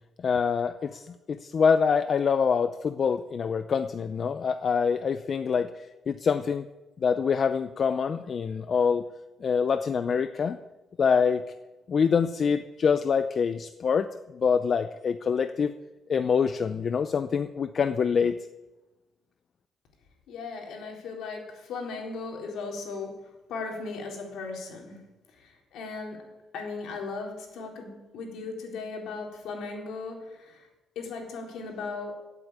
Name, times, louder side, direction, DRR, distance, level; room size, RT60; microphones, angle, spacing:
voice 1, 0.2-6.6 7.0-9.0 9.4-10.6 11.0-11.4 11.9-14.1 14.3-15.7 16.1-18.5, left 6 dB, 40° left, 11 dB, 0.6 m, -25 dB
voice 2, 20.3-25.0 25.3-30.7 31.0-32.2, left 4 dB, 85° left, 0 dB, 3.9 m, -37 dB
16.0 x 8.3 x 8.9 m, 1.1 s
cardioid pair, 145°, 0 cm